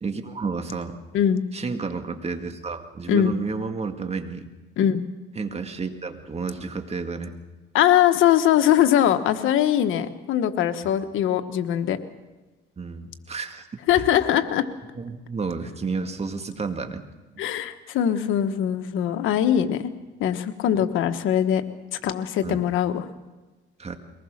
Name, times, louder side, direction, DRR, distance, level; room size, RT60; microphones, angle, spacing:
voice 1, 0.0-1.0 1.5-4.5 5.4-7.3 12.8-13.7 13.9-14.0 15.0-17.0 20.7-20.8 22.4-22.7 23.8-24.0, right 4 dB, 30° right, 6 dB, 2.0 m, -31 dB
voice 2, 7.7-12.0 13.9-14.7 17.4-19.9 20.2-21.6 21.9-23.1, left 10 dB, 85° left, 10 dB, 1.2 m, -21 dB
23.0 x 19.5 x 6.5 m, 1.2 s
cardioid pair, 90°, 20 cm